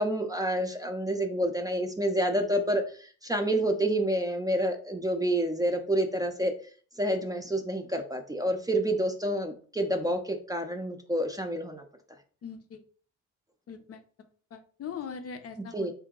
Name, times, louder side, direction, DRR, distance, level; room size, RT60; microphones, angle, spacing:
voice 1, 0.0-6.5 7.0-11.8 15.7-15.9, right 1 dB, 10° right, 4 dB, 0.5 m, -28 dB
voice 2, 12.4-12.8 13.7-15.9, left 6 dB, 45° left, 7 dB, 0.6 m, -41 dB
3.8 x 2.8 x 3.7 m, 0.43 s
cardioid pair, 95°, 32 cm